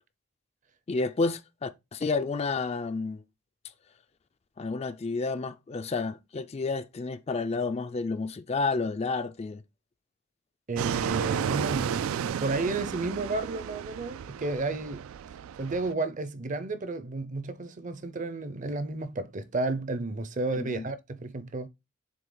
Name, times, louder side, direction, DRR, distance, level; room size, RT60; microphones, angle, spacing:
voice 1, 0.9-3.2 4.6-9.6 20.5-20.9, left 3 dB, 30° left, 0.3 m, -30 dB
voice 2, 10.7-15.1 15.6-21.7, right 2 dB, 35° right, 0.6 m, -32 dB
Fixed-wing aircraft airplane, 10.8-15.9, right 8 dB, 80° right, 0.3 m, -32 dB
7.5 x 3.3 x 3.8 m
head